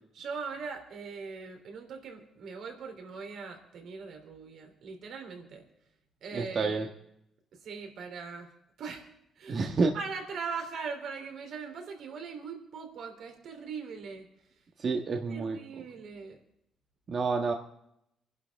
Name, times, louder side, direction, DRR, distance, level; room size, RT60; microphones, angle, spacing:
voice 1, 0.1-5.6 6.2-6.9 7.5-8.5 8.8-9.0 9.4-9.6 9.9-14.3 14.8-15.0 15.3-16.4, right 5 dB, 70° right, 4 dB, 3.4 m, -40 dB
voice 2, 6.3-6.9 9.5-9.9 14.8-15.6 17.1-17.5, right 4 dB, 50° right, 2 dB, 1.5 m, -28 dB
24.5 x 11.5 x 3.6 m, 0.80 s
cardioid pair, 90°, 0 cm